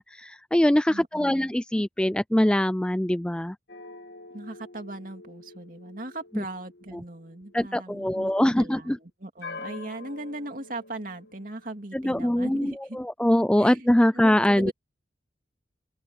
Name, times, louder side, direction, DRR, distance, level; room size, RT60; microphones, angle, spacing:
voice 1, 0.0-3.6 7.5-9.0 11.9-14.7, left 1 dB, 5° left, 0.3 m, -23 dB
voice 2, 0.9-1.5 4.3-13.0 13.6-13.9 14.1-14.7, right 2 dB, 45° right, 2.7 m, -39 dB
sound 1, 3.7-8.3 9.4-12.0, left 3 dB, 65° left, 1.5 m, -46 dB
open air
head